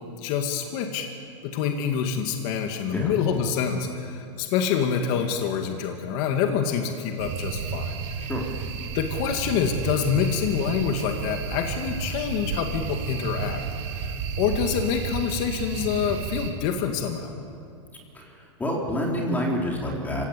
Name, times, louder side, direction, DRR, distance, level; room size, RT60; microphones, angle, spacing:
voice 1, 0.2-1.1 1.4-8.0 8.9-13.6 13.9-17.3, left 7 dB, 50° left, 4 dB, 2.1 m, -26 dB
sound 1, 7.2-16.5, right 6 dB, 55° right, 3.8 m, -32 dB
voice 2, 18.1-20.2, equal, 10° left, -1 dB, 3.9 m, -28 dB
26.5 x 17.0 x 8.5 m, 2.5 s
supercardioid pair, 140°, 16 cm